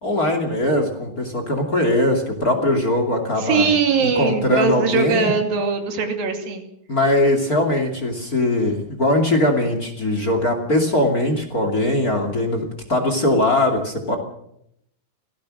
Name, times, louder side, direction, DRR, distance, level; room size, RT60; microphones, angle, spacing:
voice 1, 0.0-3.7 4.0-5.3 6.9-14.2, left 1 dB, 25° left, 5 dB, 2.7 m, -20 dB
voice 2, 3.4-6.7, right 5 dB, 80° right, 5 dB, 4.3 m, -21 dB
25.5 x 17.5 x 6.5 m, 0.75 s
omnidirectional pair, 4.1 m